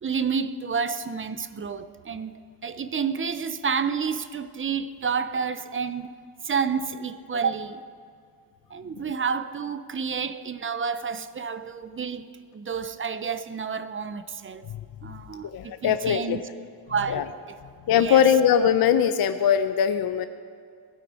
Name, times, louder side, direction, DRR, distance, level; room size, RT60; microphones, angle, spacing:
voice 1, 0.0-2.3 2.6-6.1 6.4-7.8 8.7-14.7 15.0-16.4 16.9-17.3 17.9-18.3, right 6 dB, 30° right, 12 dB, 0.4 m, -29 dB
voice 2, 15.4-16.4 17.1-17.2 17.9-20.3, left 8 dB, 50° left, 9 dB, 0.5 m, -21 dB
18.5 x 12.0 x 5.1 m, 2.1 s
wide cardioid pair, 155°, 49 cm